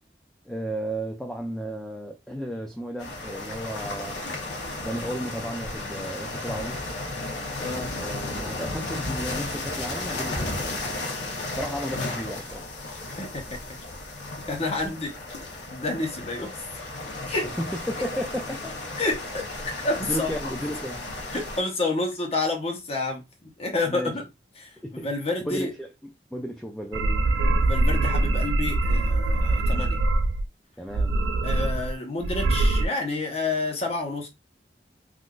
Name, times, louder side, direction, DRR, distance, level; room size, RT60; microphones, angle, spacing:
voice 1, 0.5-4.2 4.8-6.9 8.0-11.1 11.5-12.6 17.6-18.7 20.1-21.1 23.9-24.2 24.8-25.1 25.5-25.9 26.3-27.3 30.8-31.2, equal, 5° left, 0.3 m, -34 dB
sound 1, 3.0-21.6, left 2 dB, 75° left, 0.8 m, -34 dB
voice 2, 14.5-15.1 15.7-16.6 17.3-17.6 19.0-19.5 19.8-20.3 21.3-24.2 24.6-25.7 27.6-30.0 31.4-34.3, left 2 dB, 35° left, 0.9 m, -29 dB
sound 2, 26.9-30.5 30.9-31.9 32.2-32.9, right 2 dB, 75° right, 0.4 m, -23 dB
3.6 x 2.5 x 2.3 m
head